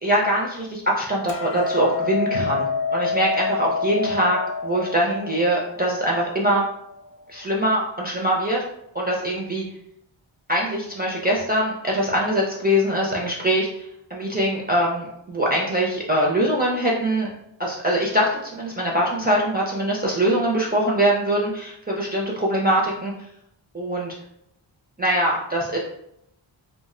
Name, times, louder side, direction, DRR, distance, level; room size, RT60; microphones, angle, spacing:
voice 1, 0.0-6.7 7.3-8.6 8.9-9.6 10.5-17.3 17.6-23.3 23.7-24.1 25.0-25.8, right 1 dB, 20° right, -4 dB, 0.4 m, -23 dB
Hammer, 1.3-7.5, left 5 dB, 85° left, 0.6 m, -28 dB
2.3 x 2.1 x 3.6 m, 0.76 s
wide cardioid pair, 110°, 49 cm